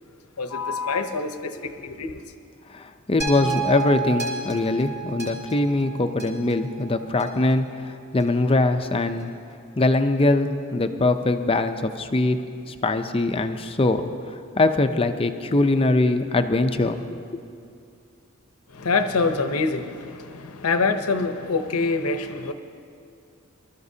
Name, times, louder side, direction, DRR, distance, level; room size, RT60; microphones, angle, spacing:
voice 1, 0.4-2.2 18.7-22.5, left 4 dB, 85° left, 8 dB, 0.8 m, -25 dB
voice 2, 2.7-9.3 9.8-12.4 12.7-14.1 14.6-17.0 17.3-17.4, left 2 dB, 25° left, 8 dB, 0.5 m, -22 dB
sound 1, 3.2-7.5 8.2-8.3, right 5 dB, 15° right, 3.4 m, -32 dB
24.0 x 13.0 x 2.8 m, 2.4 s
head